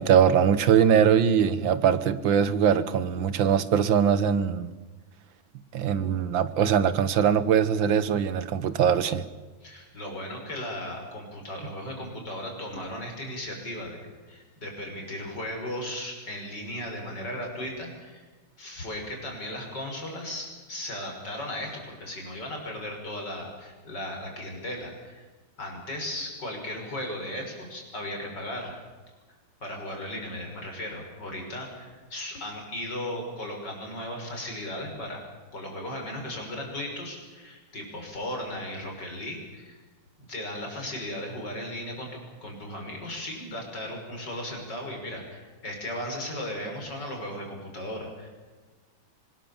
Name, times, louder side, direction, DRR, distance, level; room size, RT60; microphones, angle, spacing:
voice 1, 0.0-4.7 5.7-9.2, right 8 dB, 75° right, 1.9 m, -22 dB
voice 2, 9.6-18.3 18.6-25.3 25.6-28.7 29.6-35.3 35.5-39.8 40.3-48.3, left 1 dB, 60° left, 6.7 m, -36 dB
25.5 x 21.0 x 7.3 m
omnidirectional pair, 2.1 m